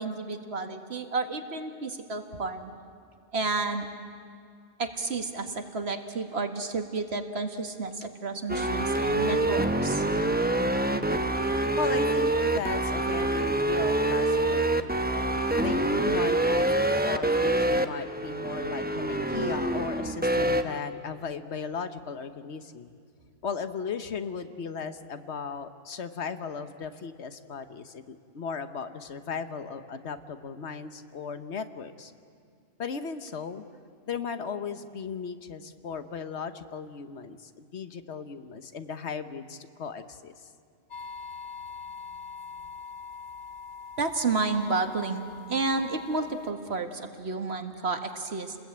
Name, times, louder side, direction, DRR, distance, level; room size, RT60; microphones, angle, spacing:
voice 1, 0.0-2.7 3.3-3.9 4.8-10.0 44.0-48.6, right 3 dB, 70° right, 6 dB, 1.9 m, -31 dB
sound 1, 8.5-20.6, right 1 dB, 10° right, 0.9 m, -26 dB
voice 2, 11.8-16.7 17.0-22.9 23.4-32.1 32.8-33.6 34.1-40.5, left 5 dB, 80° left, 10 dB, 1.4 m, -36 dB
sound 2, 40.9-46.5, left 5 dB, 50° left, 1.0 m, -43 dB
29.5 x 20.5 x 8.8 m, 2.2 s
omnidirectional pair, 1.1 m